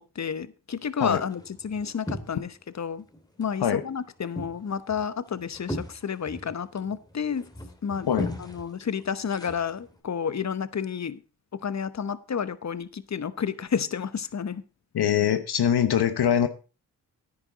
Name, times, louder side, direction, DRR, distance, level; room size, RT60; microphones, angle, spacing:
voice 1, 0.0-3.0 3.4-7.5 7.8-8.1 8.4-11.2 11.6-14.6, left 7 dB, 40° left, 0.9 m, -30 dB
sound 1, 0.8-2.7 3.0-3.7 4.0-10.0, left 1 dB, 10° left, 2.3 m, -39 dB
voice 2, 14.9-16.5, left 9 dB, 70° left, 1.0 m, -23 dB
10.0 x 9.8 x 4.0 m
cardioid pair, 50°, 41 cm